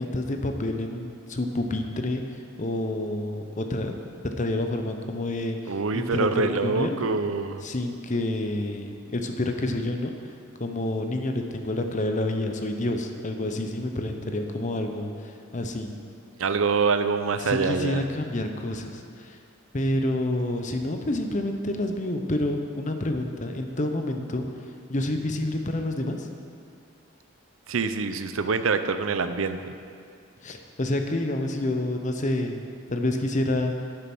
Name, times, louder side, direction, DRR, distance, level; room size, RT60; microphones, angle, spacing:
voice 1, 0.0-2.2 2.6-3.9 4.2-7.0 7.6-10.1 10.6-15.9 17.4-19.4 19.7-24.5 24.9-26.3 30.4-32.6 32.9-33.7, left 1 dB, 35° left, 5 dB, 0.8 m, -28 dB
voice 2, 5.7-7.6 16.4-18.1 27.7-29.7, right 4 dB, 70° right, 10 dB, 0.6 m, -25 dB
11.5 x 6.8 x 6.1 m, 2.3 s
head